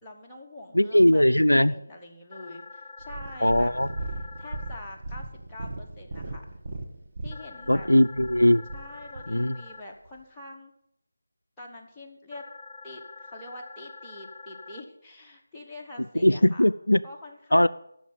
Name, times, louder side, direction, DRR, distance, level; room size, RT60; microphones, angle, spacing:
voice 1, 0.0-3.7 4.4-6.4 7.2-7.9 8.7-10.7 11.6-12.4 12.8-16.7 17.0-17.7, left 1 dB, 10° left, -5 dB, 1.1 m, -45 dB
voice 2, 0.7-1.7 3.4-3.9 7.7-8.6 9.3-9.6 16.2-17.0 17.5-17.7, left 1 dB, 85° left, 15 dB, 0.3 m, -20 dB
sound 1, 2.3-4.8 7.3-9.8 12.3-14.8, left 3 dB, 30° left, 0.7 m, -45 dB
Purr, 3.0-9.3 10.1-10.2, right 2 dB, 45° right, 1.4 m, -37 dB
9.8 x 6.3 x 7.6 m, 0.77 s
figure-of-eight pair, 160°, 0 cm